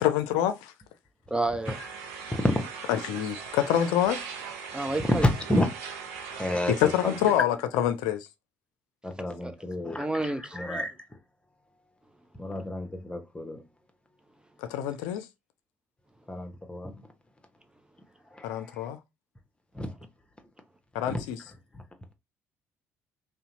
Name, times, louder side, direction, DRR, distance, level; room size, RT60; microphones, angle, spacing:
voice 1, 0.0-0.7 2.9-4.3 6.7-8.3 14.6-15.3 18.4-19.0 20.9-21.4, left 11 dB, 65° left, 0.4 m, -26 dB
voice 2, 1.3-1.8 4.7-5.3 9.4-9.6 10.0-10.6, right 2 dB, 10° right, 0.4 m, -30 dB
sound 1, 1.6-7.4, right 6 dB, 70° right, 0.6 m, -40 dB
voice 3, 5.2-5.7 6.4-6.7 7.0-7.1 9.0-10.1 10.5-11.0 12.4-13.6 16.3-17.0 18.3-18.5 19.7-19.9 21.1-21.2 21.7-21.8, left 1 dB, 15° left, 0.8 m, -30 dB
2.7 x 2.1 x 3.8 m
figure-of-eight pair, 50°, 8 cm